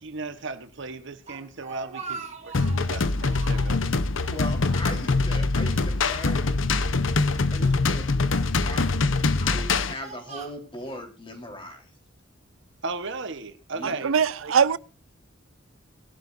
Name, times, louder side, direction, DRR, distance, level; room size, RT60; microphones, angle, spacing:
voice 1, 0.0-3.8 12.8-14.1 14.4-14.5, right 3 dB, 65° right, 1.3 m, -36 dB
Speech, 1.0-2.9 3.3-3.8 4.2-5.3 5.6-5.7 6.6-7.6 8.3-8.7 9.3-11.0, right 5 dB, 35° right, 2.2 m, -42 dB
sound 1, 2.5-9.9, left 3 dB, 70° left, 0.9 m, -24 dB
voice 2, 4.3-6.5 7.5-8.0 8.6-8.9 9.4-11.9 13.7-14.0, left 1 dB, 25° left, 4.2 m, -38 dB
voice 3, 13.8-14.8, right 7 dB, 85° right, 0.6 m, -22 dB
21.5 x 12.0 x 2.6 m
head